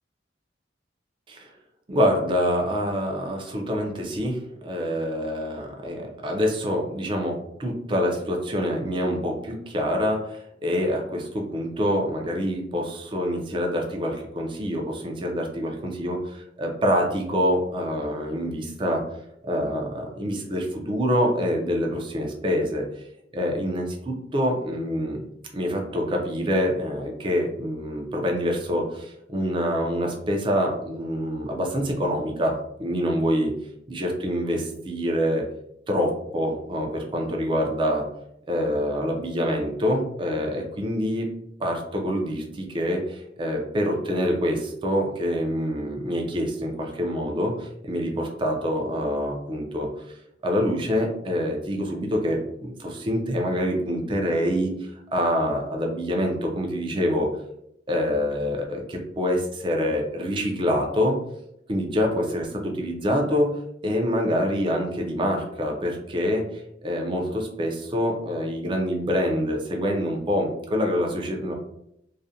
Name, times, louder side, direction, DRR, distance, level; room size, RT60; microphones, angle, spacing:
voice 1, 1.9-4.4 4.6-19.0 19.4-23.0 23.3-25.2 25.5-33.5 33.9-35.4 35.9-38.0 38.5-41.3 41.6-49.9 50.4-57.3 57.9-61.2 61.7-63.5 63.8-71.5, equal, 30° right, 1 dB, 0.4 m, -26 dB
2.4 x 2.1 x 2.6 m, 0.76 s
head